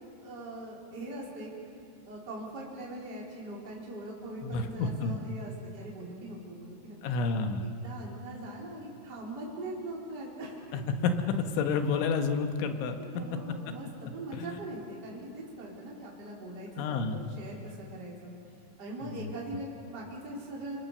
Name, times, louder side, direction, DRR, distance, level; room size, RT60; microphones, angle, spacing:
voice 1, 0.2-1.5 2.0-7.1 7.6-10.8 13.0-18.3 18.8-20.9, right 1 dB, 25° right, -4 dB, 4.1 m, -41 dB
voice 2, 4.4-5.2 7.0-7.7 10.7-11.1 11.6-13.0 14.3-14.7 16.8-17.2 19.0-19.3, left 4 dB, 80° left, 6 dB, 3.8 m, -30 dB
28.0 x 24.5 x 6.9 m, 2.3 s
omnidirectional pair, 5.4 m